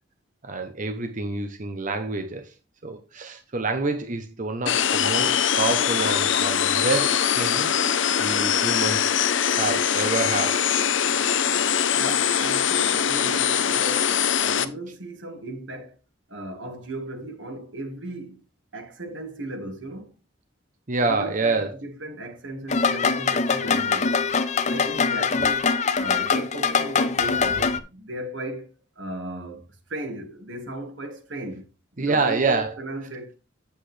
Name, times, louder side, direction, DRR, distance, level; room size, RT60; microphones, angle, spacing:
voice 1, 0.4-2.5 2.8-7.7 8.2-9.1 9.5-10.7 20.9-21.8 32.0-32.7, right 3 dB, 45° right, 0.8 m, -27 dB
sound 1, 4.7-14.7, left 8 dB, 85° left, 0.7 m, -22 dB
voice 2, 11.9-16.0 16.3-18.4 18.7-20.1 21.1-24.2 24.7-28.7 29.0-29.6 29.9-31.7 31.9-33.3, right 1 dB, 90° right, 1.8 m, -36 dB
sound 2, 22.7-27.8, left 5 dB, 40° left, 0.6 m, -23 dB
8.4 x 7.9 x 3.3 m
head